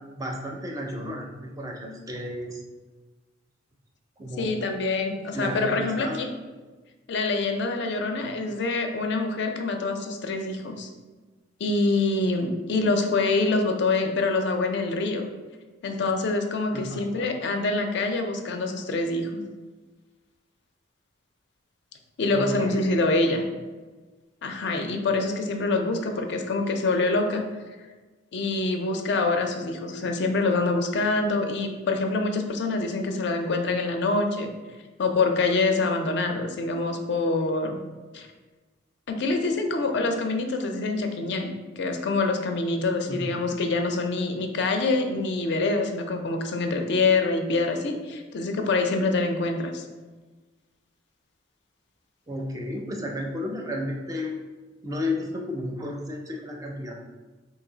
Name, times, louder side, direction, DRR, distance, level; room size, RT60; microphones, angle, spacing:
voice 1, 0.2-2.6 4.2-4.7 5.3-6.2 16.7-17.3 22.3-22.8 43.1-43.5 52.3-54.4 54.8-56.9, left 1 dB, 20° right, 1 dB, 0.4 m, -33 dB
voice 2, 4.4-6.3 7.1-10.9 11.6-15.2 15.8-19.4 22.2-23.4 24.4-27.4 28.3-34.5 35.0-37.8 38.1-38.3 39.1-49.8, left 3 dB, 65° left, 5 dB, 0.4 m, -25 dB
3.0 x 2.7 x 3.8 m, 1.3 s
head